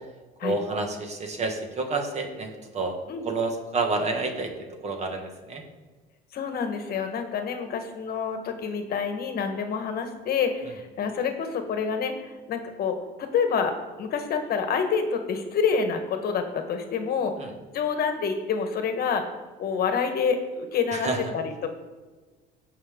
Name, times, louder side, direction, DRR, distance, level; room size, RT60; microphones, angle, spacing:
voice 1, 0.4-3.0 3.2-4.5 4.8-5.6 17.4-17.5 20.9-21.2, right 3 dB, 35° right, 3 dB, 1.8 m, -29 dB
voice 2, 6.3-17.3 17.7-19.3 19.6-21.1 21.3-21.7, left 6 dB, 50° left, 6 dB, 1.4 m, -27 dB
17.0 x 5.7 x 3.7 m, 1.3 s
cardioid pair, 115°, 20 cm